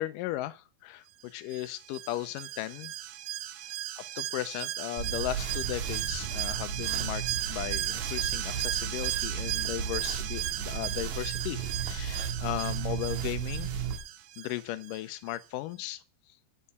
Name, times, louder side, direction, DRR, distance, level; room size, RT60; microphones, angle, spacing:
voice 1, 0.0-2.9 4.0-7.2 7.5-13.7 14.4-16.0, left 15 dB, 85° left, 1.9 m, -36 dB
Alarm, 1.5-15.0 15.3-15.4, right 13 dB, 90° right, 1.7 m, -36 dB
sound 1, 5.0-14.0, right 7 dB, 65° right, 3.2 m, -35 dB
sound 2, 5.7-8.1, left 6 dB, 15° right, 2.1 m, -49 dB
11.0 x 5.7 x 8.3 m
omnidirectional pair, 4.6 m